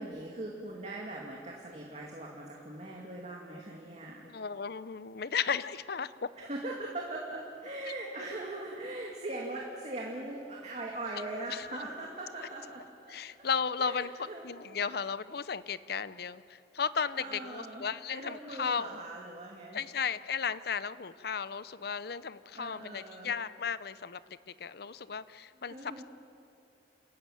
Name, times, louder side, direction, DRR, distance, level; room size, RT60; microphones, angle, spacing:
voice 1, 0.0-4.2 6.4-13.2 13.8-14.4 17.1-19.8 22.5-23.3 25.7-26.0, right 2 dB, 40° right, -2 dB, 2.4 m, -40 dB
voice 2, 4.2-6.1 11.5-11.7 13.1-14.1 14.4-18.9 19.7-26.0, left 6 dB, 60° left, 15 dB, 0.6 m, -35 dB
28.5 x 14.5 x 9.2 m, 2.5 s
head